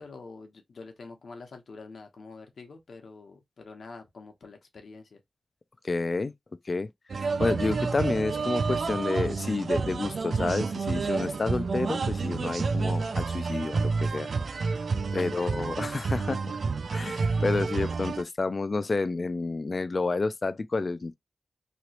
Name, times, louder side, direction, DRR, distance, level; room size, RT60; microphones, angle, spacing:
voice 1, 0.0-5.2 15.2-15.7, left 4 dB, 80° left, 1.0 m, -46 dB
voice 2, 5.8-6.3 6.7-6.9 7.2-14.8 15.1-16.6 16.9-21.2, left 3 dB, 45° left, 0.3 m, -30 dB
sound 1, 7.1-18.2, right 4 dB, 70° right, 0.3 m, -29 dB
3.0 x 2.9 x 2.8 m
wide cardioid pair, 100°, 0 cm